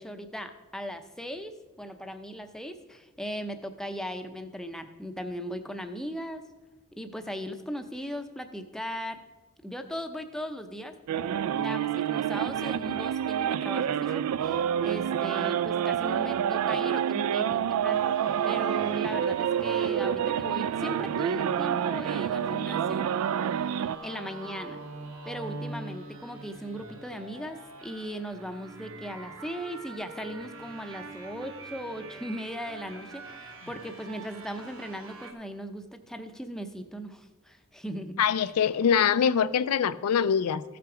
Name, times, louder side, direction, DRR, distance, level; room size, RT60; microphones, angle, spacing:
voice 1, 0.0-6.4 6.9-9.2 9.6-10.9 11.5-18.1 18.4-23.1 24.0-24.8 25.2-38.2 38.4-38.5, equal, ahead, 0.5 m, -38 dB
sound 1, 11.1-24.0, right 9 dB, 80° right, 0.3 m, -28 dB
sound 2, 17.9-35.3, right 2 dB, 60° right, 1.3 m, -44 dB
voice 2, 38.2-40.6, left 7 dB, 90° left, 0.4 m, -24 dB
14.5 x 5.9 x 4.9 m
head